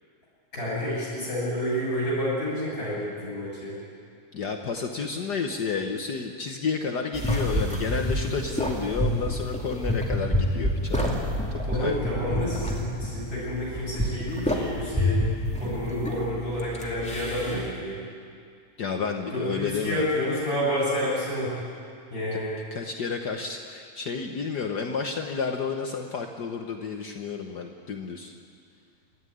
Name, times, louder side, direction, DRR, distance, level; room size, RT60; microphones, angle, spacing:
voice 1, 0.5-3.8 11.6-15.3 15.6-18.0 19.3-21.6 22.1-22.6, equal, 20° left, -6 dB, 7.7 m, -29 dB
voice 2, 4.3-11.3 11.7-11.9 18.8-20.0 22.3-22.4 22.7-28.3, left 5 dB, 85° left, 3 dB, 0.9 m, -31 dB
sound 1, 7.1-17.7, equal, ahead, 1.9 m, -28 dB
26.5 x 13.5 x 10.0 m, 2.2 s
omnidirectional pair, 3.6 m